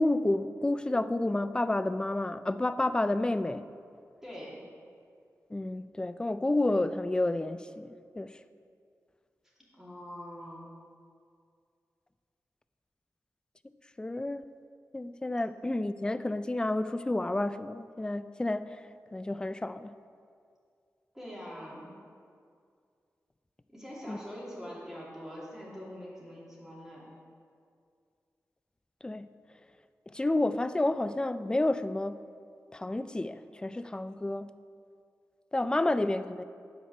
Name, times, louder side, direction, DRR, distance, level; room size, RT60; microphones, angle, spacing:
voice 1, 0.0-3.7 5.5-8.4 14.0-14.6 14.9-18.8 19.1-19.9 24.1-24.2 29.0-29.3 30.1-32.2 32.7-34.5 35.5-36.4, left 2 dB, 15° left, 0.3 m, -30 dB
voice 2, 4.2-4.6 9.7-10.7 21.1-21.9 23.7-27.1, equal, 10° right, 2.5 m, -44 dB
9.4 x 4.4 x 6.8 m
wide cardioid pair, 85°, 6 cm